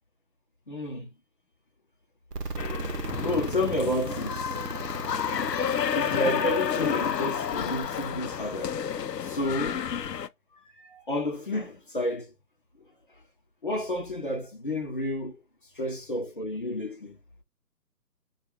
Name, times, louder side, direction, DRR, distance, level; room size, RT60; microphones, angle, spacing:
voice 1, 0.7-1.1 2.4-2.6 3.1-4.6 5.5-5.7 5.9-8.8 9.2-9.8 10.5-12.3 13.6-15.4 15.8-17.2, left 1 dB, 35° left, 0.7 m, -31 dB
sound 1, 2.3-8.1, right 3 dB, 70° right, 0.9 m, -37 dB
sound 2, 2.6-10.3, left 8 dB, 80° left, 0.6 m, -30 dB
4.4 x 2.4 x 3.1 m
figure-of-eight pair, 150°, 48 cm